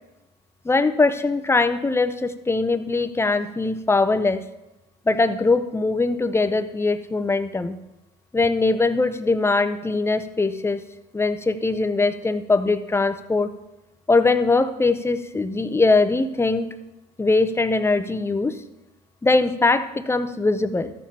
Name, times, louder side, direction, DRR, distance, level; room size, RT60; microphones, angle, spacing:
voice 1, 0.6-4.4 5.1-7.8 8.3-10.8 11.1-13.5 14.1-16.7 17.2-18.6 19.2-20.9, left 3 dB, 15° left, 10 dB, 0.6 m, -21 dB
13.0 x 7.2 x 4.3 m, 0.95 s
cardioid pair, 110°, 17 cm